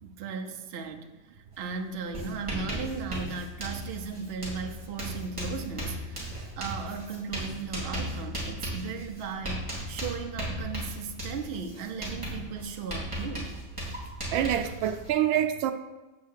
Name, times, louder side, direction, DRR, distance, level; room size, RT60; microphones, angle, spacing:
voice 1, 0.0-1.1 1.6-13.5, right 5 dB, 45° right, 0.8 m, -36 dB
Writing, 1.5-1.7 2.0-15.1, equal, 15° right, 3.3 m, -37 dB
voice 2, 14.3-15.7, right 10 dB, 90° right, 1.4 m, -26 dB
8.2 x 5.6 x 6.5 m
omnidirectional pair, 2.1 m